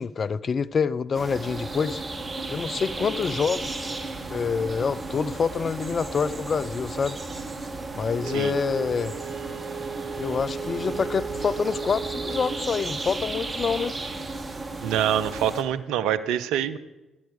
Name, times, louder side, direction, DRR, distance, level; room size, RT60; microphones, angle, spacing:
voice 1, 0.0-2.0 2.5-4.0 4.3-7.2 7.9-9.1 10.2-13.9, left 6 dB, 45° left, 0.4 m, -27 dB
sound 1, 1.1-15.6, right 3 dB, 30° right, 1.5 m, -34 dB
Wind instrument woodwind instrument, 8.2-12.7, right 5 dB, 50° right, 1.5 m, -35 dB
voice 2, 14.8-16.8, right 10 dB, 70° right, 0.6 m, -25 dB
15.0 x 10.5 x 5.1 m
hypercardioid pair, 45°, 0 cm